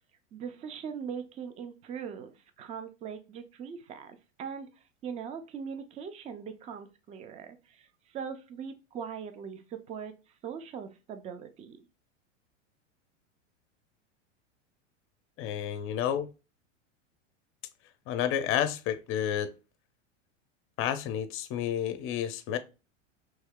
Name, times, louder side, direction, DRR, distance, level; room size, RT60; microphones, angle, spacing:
voice 1, 0.3-11.8, right 7 dB, 20° right, 0.4 m, -41 dB
voice 2, 15.4-16.3 18.1-19.5 20.8-22.6, left 10 dB, 35° left, 0.6 m, -30 dB
3.2 x 2.7 x 3.5 m
hypercardioid pair, 110°, 37 cm